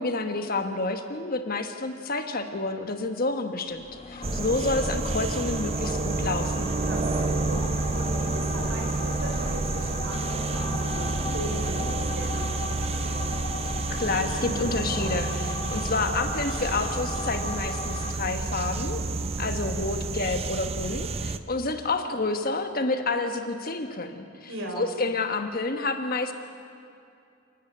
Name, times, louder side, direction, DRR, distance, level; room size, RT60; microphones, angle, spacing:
voice 1, 0.0-6.7 13.9-19.0 19.4-26.3, left 3 dB, 45° left, 6 dB, 1.3 m, -29 dB
sound 1, 3.7-18.1, left 4 dB, 30° left, 0.9 m, -37 dB
sound 2, 4.2-21.4, right 3 dB, 30° right, 0.6 m, -29 dB
voice 2, 6.9-12.5 24.5-24.8, right 1 dB, 60° right, 0 dB, 4.5 m, -37 dB
28.5 x 10.0 x 9.6 m, 2.5 s
head